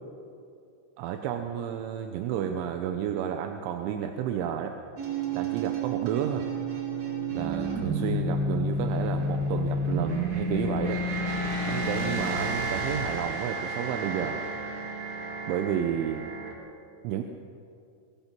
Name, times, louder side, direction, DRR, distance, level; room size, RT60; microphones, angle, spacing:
voice 1, 1.0-4.8 5.3-6.5 7.3-11.0 11.7-14.4 15.5-16.3 17.0-17.2, right 9 dB, 80° right, 5 dB, 3.3 m, -31 dB
sound 1, 5.0-16.5, right 1 dB, 40° right, 3.9 m, -31 dB
sound 2, 7.3-13.2, right 2 dB, 70° left, 7.8 m, -38 dB
23.5 x 21.5 x 6.1 m, 2.4 s
omnidirectional pair, 5.5 m